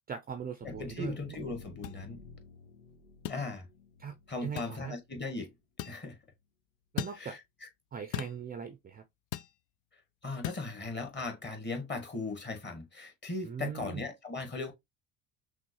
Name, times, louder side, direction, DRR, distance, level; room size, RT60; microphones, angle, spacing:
voice 1, 0.1-1.2 4.0-4.1 4.4-4.9 6.9-7.4 7.9-9.0 13.4-14.0, right 7 dB, 20° right, 0.5 m, -39 dB
sound 1, 0.6-5.4, left 4 dB, 85° left, 0.9 m, -52 dB
voice 2, 0.6-2.2 3.3-3.7 4.3-5.5 5.8-6.2 7.1-7.7 10.2-14.7, left 3 dB, 25° left, 1.4 m, -38 dB
sound 2, 1.8-2.0 3.2-3.4 4.6-4.8 5.8-6.0 7.0-7.2 8.1-8.4 9.3-9.5 10.4-10.6, left 12 dB, 45° left, 0.4 m, -37 dB
6.0 x 2.0 x 3.0 m
hypercardioid pair, 65°, 45 cm